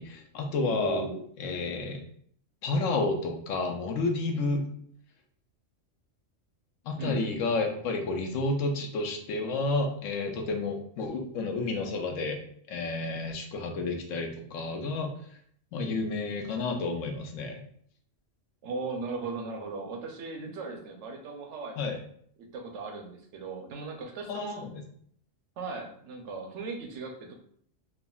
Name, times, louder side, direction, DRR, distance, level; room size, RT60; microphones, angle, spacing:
voice 1, 0.0-1.0 1.4-2.0 2.6-4.7 6.8-12.4 12.7-15.1 15.7-17.6 21.8-22.0 24.3-24.8, left 3 dB, 85° left, 3 dB, 1.0 m, -30 dB
voice 2, 0.7-1.2 7.0-7.2 18.6-21.9 22.4-24.6 25.6-27.3, right 3 dB, 70° right, 3 dB, 0.9 m, -37 dB
3.5 x 2.1 x 2.3 m, 0.62 s
omnidirectional pair, 1.3 m